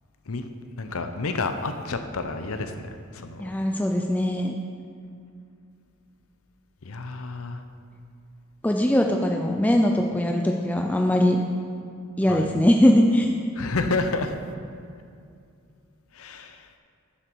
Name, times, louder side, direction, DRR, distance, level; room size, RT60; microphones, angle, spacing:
voice 1, 0.8-3.5 6.8-7.6 12.3-12.5 13.5-14.4 16.1-16.7, left 3 dB, 85° left, 7 dB, 0.8 m, -30 dB
voice 2, 3.4-4.5 8.6-11.4 12.2-13.3, left 1 dB, 5° left, 2 dB, 0.4 m, -21 dB
12.0 x 7.3 x 4.7 m, 2.4 s
head